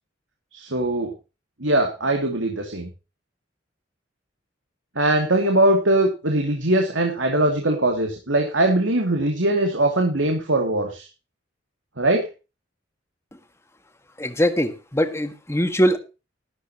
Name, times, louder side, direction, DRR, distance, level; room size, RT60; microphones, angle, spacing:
voice 1, 0.5-1.1 1.6-2.9 5.0-11.1 12.0-12.3, right 1 dB, 75° right, 3 dB, 2.8 m, -21 dB
voice 2, 14.2-16.0, equal, 15° left, 8 dB, 1.8 m, -21 dB
13.0 x 13.0 x 3.0 m, 0.30 s
head